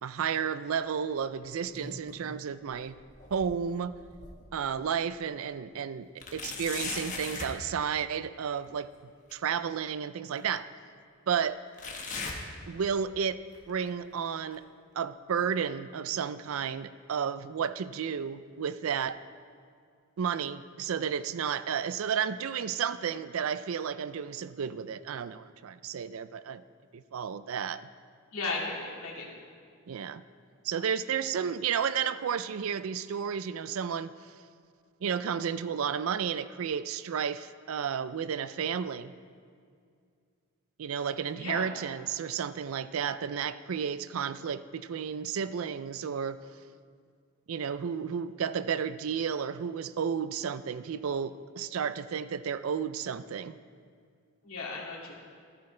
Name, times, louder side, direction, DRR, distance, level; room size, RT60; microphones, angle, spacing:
voice 1, 0.0-3.0 3.3-3.9 4.5-8.9 9.3-10.7 11.3-11.6 12.7-13.4 13.7-14.6 15.0-19.2 20.2-26.6 26.9-27.8 29.9-30.2 30.6-34.1 35.0-39.1 40.8-46.4 47.5-53.6, right 7 dB, 75° right, 14 dB, 0.4 m, -32 dB
sound 1, 1.4-2.3 2.7-4.6 5.1-5.2 6.2-7.6 9.3-9.4 10.3-10.4 11.8-13.2 13.5-13.9 14.5-14.6 15.5-15.6, left 4 dB, 35° left, 1.4 m, -40 dB
voice 2, 28.3-29.4 41.3-41.7 54.4-55.1, left 3 dB, 80° left, -3 dB, 2.5 m, -35 dB
14.0 x 13.0 x 3.3 m, 2.2 s
head